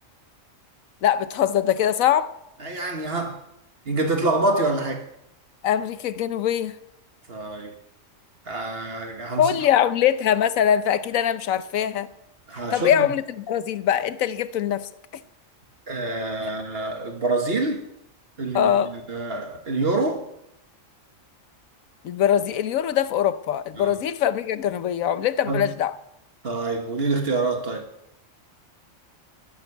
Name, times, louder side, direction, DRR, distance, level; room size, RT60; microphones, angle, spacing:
voice 1, 1.0-2.3 5.6-6.8 9.4-12.1 12.7-15.2 18.5-18.9 22.0-25.9, left 10 dB, 90° left, 1.2 m, -22 dB
voice 2, 2.6-3.4 3.9-5.1 7.3-7.7 8.5-9.4 12.5-13.1 15.9-17.8 18.4-20.3 23.8-24.0 25.5-25.7 26.4-27.9, right 2 dB, 50° right, 1.9 m, -26 dB
13.5 x 10.5 x 6.8 m
omnidirectional pair, 1.4 m